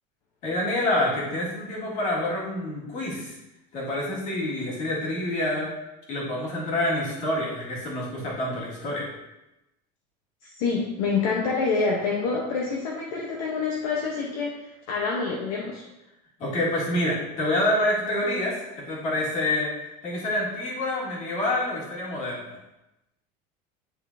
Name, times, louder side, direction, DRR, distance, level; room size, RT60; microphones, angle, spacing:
voice 1, 0.4-3.4 3.7-5.7 6.1-9.1 16.4-19.7 20.0-22.6, left 1 dB, 35° left, -5 dB, 2.2 m, -27 dB
voice 2, 10.4-15.8, left 4 dB, 65° left, -2 dB, 1.1 m, -27 dB
10.0 x 3.7 x 2.8 m, 0.93 s
cardioid pair, 175°, 20 cm